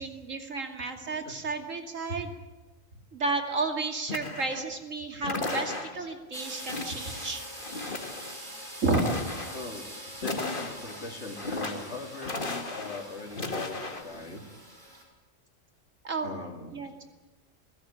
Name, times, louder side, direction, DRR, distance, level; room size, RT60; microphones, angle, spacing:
voice 1, 0.0-2.3 3.1-7.4 8.8-9.1 16.0-16.3 16.7-17.1, right 3 dB, 85° right, 4 dB, 3.0 m, -32 dB
sound 1, 4.1-4.7 5.2-6.1 6.7-7.3 7.6-8.4 8.8-9.6 10.2-11.0 11.4-11.9 12.2-13.0 13.3-14.0, left 3 dB, 40° left, 2.1 m, -35 dB
sound 2, 6.3-15.0, equal, 45° right, 5.5 m, -44 dB
voice 2, 9.5-14.4 16.2-17.0, left 3 dB, 60° left, 1 dB, 3.3 m, -40 dB
28.0 x 16.0 x 8.9 m, 1.2 s
omnidirectional pair, 1.3 m